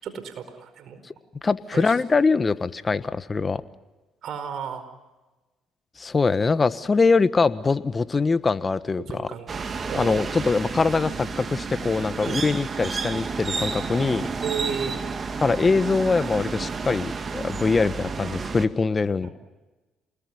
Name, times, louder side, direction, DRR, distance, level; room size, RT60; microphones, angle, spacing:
voice 1, 0.0-1.0 1.7-1.9 4.2-4.8 9.0-9.6 9.9-10.2 12.2-12.4 14.4-14.9 19.2-19.3, right 7 dB, 65° right, 11 dB, 4.8 m, -33 dB
voice 2, 1.4-3.6 6.0-9.3 9.9-14.3 15.4-19.3, left 4 dB, 30° left, 13 dB, 1.4 m, -23 dB
sound 1, 9.5-18.7, right 4 dB, 40° right, 2.2 m, -31 dB
28.5 x 21.0 x 9.6 m, 1.1 s
supercardioid pair, 65°, 0 cm